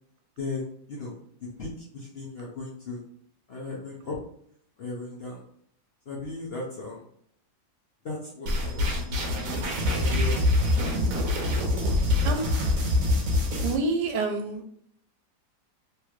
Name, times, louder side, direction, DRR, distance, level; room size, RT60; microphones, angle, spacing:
voice 1, 0.4-1.2 1.6-3.0 3.5-4.2 4.8-5.4 6.1-7.0 8.0-10.4, left 3 dB, 55° left, -4 dB, 0.7 m, -37 dB
sound 1, 8.5-13.8, left 2 dB, 60° right, 1.1 m, -25 dB
voice 2, 13.6-14.6, right 3 dB, 85° right, 6 dB, 1.2 m, -27 dB
3.2 x 3.0 x 2.4 m, 0.66 s
omnidirectional pair, 1.8 m